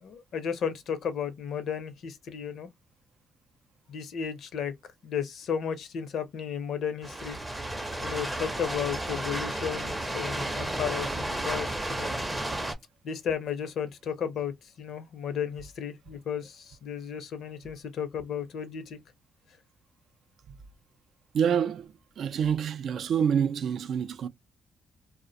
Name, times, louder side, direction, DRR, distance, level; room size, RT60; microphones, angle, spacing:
voice 1, 0.0-2.7 3.9-4.7 5.0-7.4 8.0-12.1 13.0-19.0, left 7 dB, 70° left, 0.6 m, -34 dB
sound 1, 7.0-12.8, right 1 dB, 10° right, 0.5 m, -32 dB
voice 2, 21.3-24.3, right 8 dB, 65° right, 0.3 m, -27 dB
2.4 x 2.1 x 2.5 m
cardioid pair, 90°, 0 cm